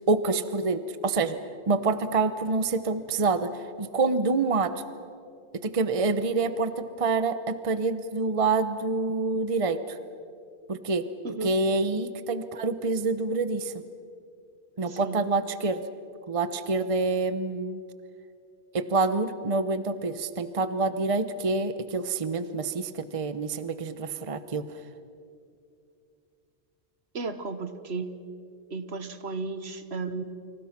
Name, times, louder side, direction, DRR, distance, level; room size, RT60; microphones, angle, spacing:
voice 1, 0.1-1.4 1.7-3.5 3.8-4.7 5.6-10.0 10.7-11.0 11.4-13.7 14.8-15.8 16.3-17.8 18.7-24.6, right 3 dB, 30° right, 11 dB, 0.9 m, -27 dB
voice 2, 11.2-11.6 14.9-15.2 27.1-28.1 28.7-30.2, right 3 dB, 65° right, 10 dB, 1.6 m, -34 dB
29.5 x 26.0 x 6.0 m, 2.5 s
omnidirectional pair, 1.2 m